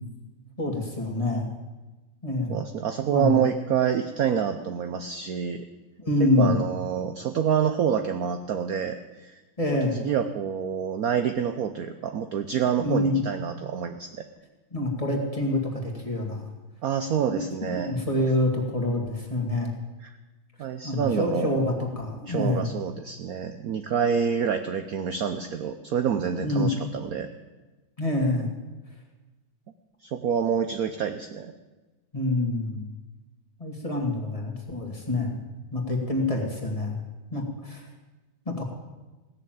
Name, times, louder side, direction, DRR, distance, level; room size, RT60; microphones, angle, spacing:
voice 1, 0.6-1.5 2.2-2.6 3.1-3.4 6.0-6.5 9.6-9.9 12.8-13.2 14.7-16.5 17.3-19.7 20.8-22.7 26.4-26.7 28.0-28.5 32.1-32.9 33.6-35.4 35.7-37.0 37.3-37.8 38.5-38.6, left 2 dB, 20° left, -1 dB, 2.1 m, -26 dB
voice 2, 2.5-5.6 6.2-9.4 9.9-14.2 16.8-17.9 20.0-20.1 20.6-21.6 22.3-27.3 30.0-31.5, right 8 dB, 65° right, 8 dB, 1.0 m, -27 dB
17.0 x 6.8 x 9.1 m, 1.2 s
omnidirectional pair, 2.1 m